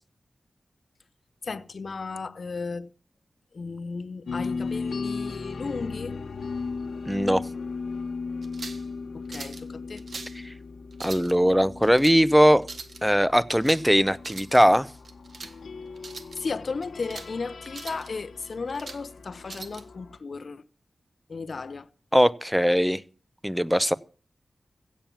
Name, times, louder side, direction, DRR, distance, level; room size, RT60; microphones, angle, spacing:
voice 1, 1.4-2.9 3.5-6.2 9.1-10.0 16.4-20.6 21.3-21.9, left 4 dB, 60° left, 0.7 m, -35 dB
sound 1, 4.3-20.2, left 4 dB, 85° left, 1.2 m, -37 dB
voice 2, 7.1-7.4 11.0-12.6 13.0-14.9 22.1-23.0 23.4-23.9, equal, ahead, 0.6 m, -20 dB
sound 2, 8.4-8.9 9.3-9.6 10.0-10.4 10.9-11.3 11.8-12.2 12.6-13.0 13.5-13.9 14.2-14.6 15.1-15.5 16.0-16.4 16.8-17.3 17.7-18.1 18.5-19.0 19.5-19.8, right 4 dB, 70° right, 1.4 m, -41 dB
16.0 x 7.4 x 7.1 m
wide cardioid pair, 95°, 0 cm